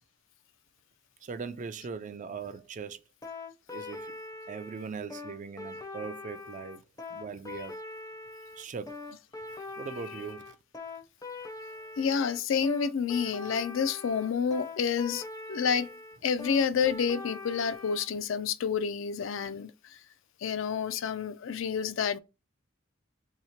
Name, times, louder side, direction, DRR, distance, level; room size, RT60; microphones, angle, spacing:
voice 1, 1.2-3.0 3.7-4.1 4.5-6.8 7.1-7.8 8.6-8.9 9.8-10.6, right 5 dB, 40° right, 0.3 m, -40 dB
sound 1, 3.2-18.1, left 3 dB, 20° left, 0.5 m, -42 dB
voice 2, 12.0-15.2 15.5-15.9 16.2-19.7 20.4-22.2, left 6 dB, 70° left, 0.4 m, -29 dB
2.9 x 2.8 x 4.2 m
head